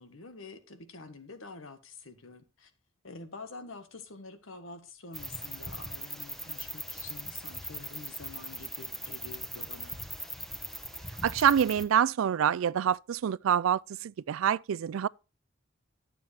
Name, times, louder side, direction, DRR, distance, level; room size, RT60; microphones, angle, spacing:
voice 1, 0.0-2.7 3.0-10.0, left 3 dB, 80° left, 1.4 m, -47 dB
sound 1, 5.1-11.8, equal, ahead, 1.0 m, -40 dB
voice 2, 11.2-15.1, right 9 dB, 80° right, 0.3 m, -26 dB
11.5 x 7.5 x 2.7 m
head